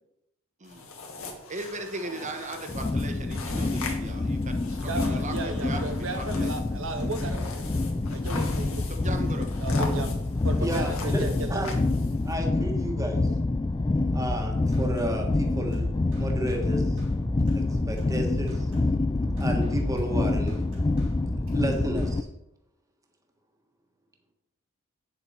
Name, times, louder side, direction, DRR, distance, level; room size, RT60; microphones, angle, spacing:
sound 1, 0.6-12.3, left 3 dB, 75° left, 1.8 m, -41 dB
voice 1, 1.5-6.5 8.6-9.5 9.8-10.0, right 2 dB, 35° right, 6 dB, 1.2 m, -38 dB
sound 2, 2.7-22.2, left 2 dB, 20° left, 0.3 m, -27 dB
voice 2, 4.9-7.6 8.1-8.9 9.6-10.1 10.4-11.7, right 3 dB, 65° right, 6 dB, 0.7 m, -35 dB
voice 3, 10.6-11.2 11.5-11.7 12.2-13.3 14.1-15.9 16.1-17.0 17.5-18.7 19.4-20.6 21.5-22.3, right 1 dB, 15° right, 2 dB, 1.5 m, -32 dB
sound 3, 14.2-22.1, right 1 dB, 80° right, 4.0 m, -36 dB
9.0 x 7.1 x 4.6 m, 0.83 s
head